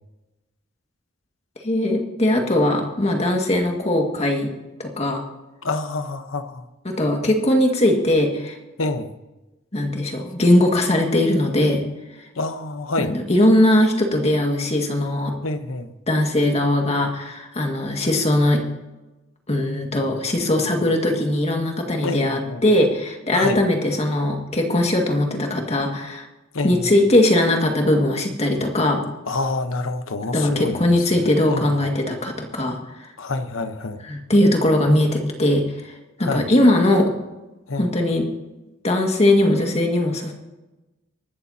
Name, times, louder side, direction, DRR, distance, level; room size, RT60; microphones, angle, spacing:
voice 1, 1.6-4.5 4.8-5.2 6.8-8.6 9.7-11.8 13.0-15.3 16.1-18.6 19.5-26.3 26.6-29.0 30.3-32.8 34.1-35.9 36.2-37.1 37.8-38.2 38.8-40.3, left 1 dB, 35° left, 1 dB, 2.0 m, -20 dB
voice 2, 5.6-6.6 8.8-9.1 12.4-13.1 15.4-15.9 22.0-22.6 23.3-23.6 26.5-26.9 29.3-31.7 33.2-34.0 36.2-36.5 37.7-37.9, left 2 dB, 85° left, 9 dB, 1.1 m, -27 dB
24.5 x 12.5 x 2.9 m, 1.1 s
head